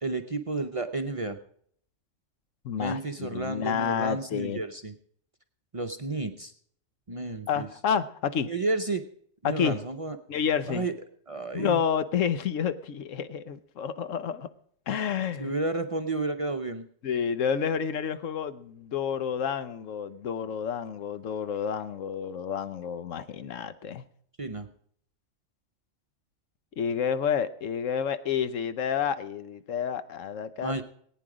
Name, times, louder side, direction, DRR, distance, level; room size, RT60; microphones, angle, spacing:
voice 1, 0.0-1.4 2.8-4.9 5.7-6.5 7.1-7.7 8.5-9.0 9.4-10.2 10.7-10.9 11.3-11.8 15.4-16.9 24.4-24.7 30.6-30.8, right 3 dB, 35° right, 6 dB, 0.6 m, -31 dB
voice 2, 2.6-4.6 7.5-8.5 9.4-9.8 10.3-10.9 11.5-14.5 14.9-15.5 17.0-24.0 26.8-30.8, left 7 dB, 85° left, 13 dB, 1.2 m, -29 dB
18.5 x 9.3 x 4.9 m, 0.63 s
omnidirectional pair, 1.3 m